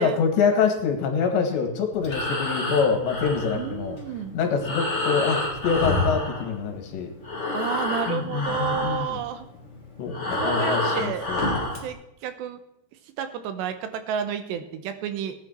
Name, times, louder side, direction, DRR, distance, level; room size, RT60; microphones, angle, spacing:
voice 1, 0.0-4.0 4.3-7.1 8.1-9.2 10.0-11.4, left 5 dB, 80° left, 5 dB, 4.0 m, -25 dB
Breathing, 1.9-6.9 7.2-11.9, left 2 dB, 20° left, 2.2 m, -28 dB
voice 2, 3.5-4.4 7.5-9.5 10.4-11.3 11.8-12.6 13.2-15.4, right 8 dB, 80° right, 10 dB, 3.0 m, -31 dB
18.5 x 9.7 x 4.4 m, 0.81 s
omnidirectional pair, 5.1 m